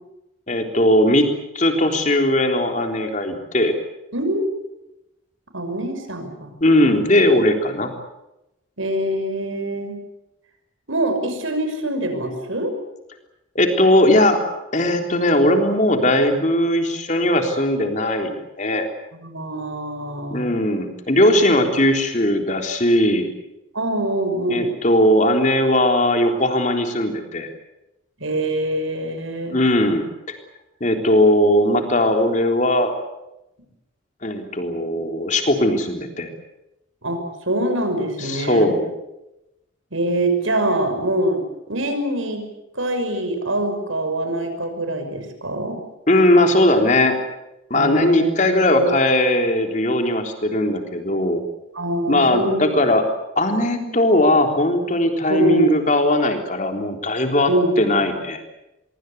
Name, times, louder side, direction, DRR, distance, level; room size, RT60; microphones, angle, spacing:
voice 1, 0.5-3.8 6.6-7.9 13.6-14.4 14.7-18.9 20.3-23.3 24.5-27.5 29.5-30.4 30.8-32.9 34.2-36.3 38.2-38.8 46.1-47.2 47.7-51.4 52.1-53.1 53.4-57.5 57.8-58.4, left 1 dB, 35° left, 4 dB, 3.7 m, -18 dB
voice 2, 4.1-4.5 5.5-6.6 8.8-10.0 10.9-12.7 19.1-20.5 23.7-24.7 28.2-29.6 37.0-38.8 39.9-42.5 42.7-45.8 47.7-48.9 51.7-52.8 53.6-53.8 55.3-55.7 57.5-58.1, right 1 dB, 85° right, 7 dB, 6.0 m, -24 dB
25.0 x 23.0 x 8.2 m, 0.91 s
head